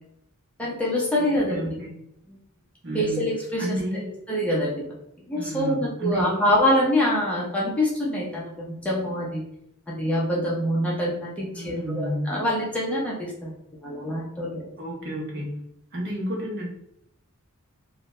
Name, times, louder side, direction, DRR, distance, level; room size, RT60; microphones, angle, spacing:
voice 1, 0.6-1.8 2.3-2.4 2.9-3.8 4.3-4.9 5.3-9.5 9.9-13.5 13.8-14.7, left 1 dB, 5° left, -5 dB, 0.6 m, -25 dB
voice 2, 1.2-2.0 2.8-3.3 3.6-4.1 5.3-6.6 11.5-12.3 14.8-15.6 15.9-16.7, right 1 dB, 55° right, -2 dB, 0.8 m, -31 dB
2.6 x 2.2 x 3.0 m, 0.77 s
head